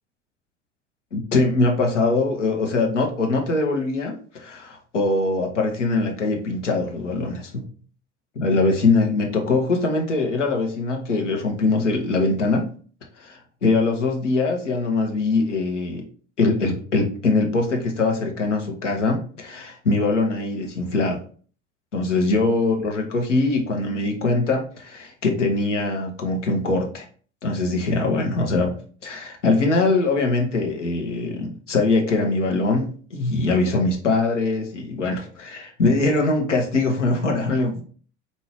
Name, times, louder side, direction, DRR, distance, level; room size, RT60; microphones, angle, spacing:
voice 1, 1.1-7.6 8.3-12.7 13.2-16.0 16.4-21.2 21.9-27.1 27.4-28.7 29.0-37.8, left 3 dB, 80° left, 2 dB, 0.9 m, -22 dB
4.2 x 2.7 x 2.9 m, 0.43 s
figure-of-eight pair, 75°, 36 cm